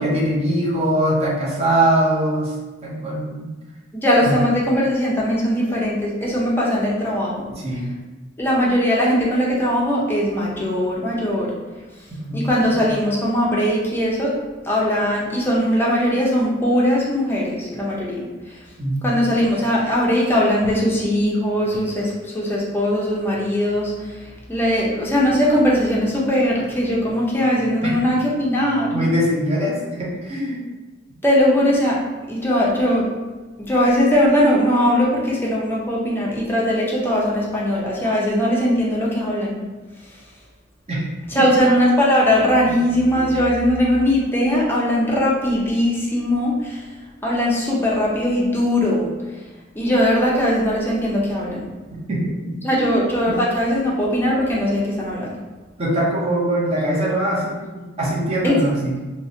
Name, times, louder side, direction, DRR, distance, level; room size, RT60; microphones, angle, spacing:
voice 1, 0.0-2.6 2.8-3.5 4.2-4.4 7.6-7.9 12.3-12.4 18.8-19.2 27.8-27.9 28.9-30.7 40.9-41.1 41.3-41.7 42.7-42.8 52.1-53.0 53.3-53.4 55.8-59.0, right 1 dB, 35° right, -5 dB, 0.6 m, -22 dB
voice 2, 3.9-7.5 8.4-11.5 12.3-14.4 14.6-18.2 19.0-29.1 31.2-32.0 32.3-33.1 33.6-39.6 41.3-46.8 47.2-49.1 49.7-51.6 52.6-55.3 58.4-58.6, equal, 10° left, -5 dB, 0.5 m, -20 dB
2.6 x 2.0 x 2.6 m, 1.2 s
head